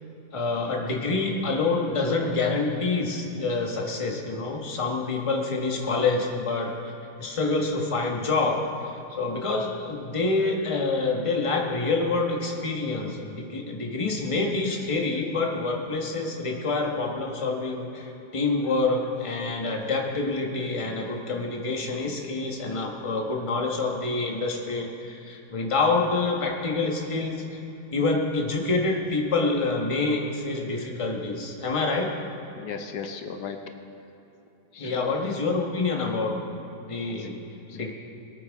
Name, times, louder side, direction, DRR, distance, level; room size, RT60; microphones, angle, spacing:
voice 1, 0.3-6.7 7.2-8.9 9.2-27.6 27.9-32.1 34.7-37.3 37.7-37.9, left 3 dB, 20° left, 0 dB, 1.2 m, -27 dB
voice 2, 32.6-33.6 34.7-35.2 37.2-37.9, left 6 dB, 75° left, 6 dB, 1.3 m, -38 dB
21.5 x 9.2 x 3.6 m, 3.0 s
omnidirectional pair, 1.8 m